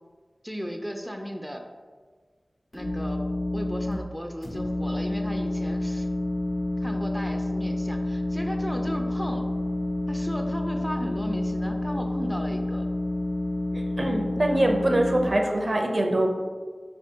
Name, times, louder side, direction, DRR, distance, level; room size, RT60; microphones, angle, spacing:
voice 1, 0.4-1.6 2.7-3.2 3.5-6.1 6.8-9.5 10.1-12.9, equal, ahead, 3 dB, 0.4 m, -35 dB
sound 1, 2.7-3.9 4.4-15.2, left 1 dB, 75° left, 0.9 m, -29 dB
voice 2, 13.7-16.3, right 1 dB, 55° right, 2 dB, 0.5 m, -24 dB
4.6 x 3.5 x 2.8 m, 1.5 s
wide cardioid pair, 50°, 0 cm